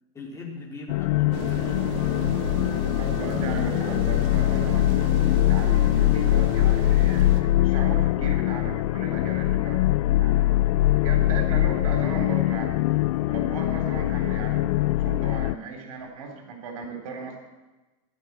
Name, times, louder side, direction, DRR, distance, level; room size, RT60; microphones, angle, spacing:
voice 1, 0.1-1.8 3.2-3.5 13.0-13.3, left 3 dB, 15° left, -2 dB, 3.6 m, -40 dB
sound 1, 0.9-15.5, left 16 dB, 75° left, 0.5 m, -22 dB
sound 2, 1.3-7.4, right 6 dB, 55° right, 2.1 m, -35 dB
voice 2, 3.0-4.9 5.5-9.9 10.2-10.7 10.9-12.7 13.3-14.7 15.0-17.4, right 4 dB, 80° right, 4 dB, 3.8 m, -36 dB
16.0 x 11.0 x 7.6 m, 1.2 s
supercardioid pair, 145°, 18 cm